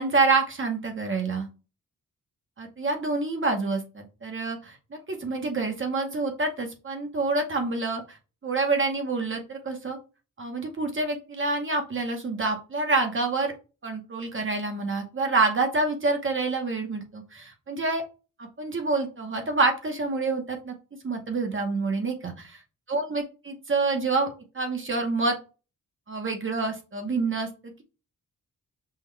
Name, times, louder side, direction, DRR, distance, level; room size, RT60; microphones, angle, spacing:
voice 1, 0.0-1.5 2.6-8.2 8.4-10.0 10.4-13.5 13.8-18.0 18.4-20.7 21.0-22.5 22.9-25.4 26.1-27.8, right 3 dB, 35° right, 4 dB, 0.7 m, -27 dB
5.6 x 2.1 x 3.1 m, 0.32 s
wide cardioid pair, 160°, 35 cm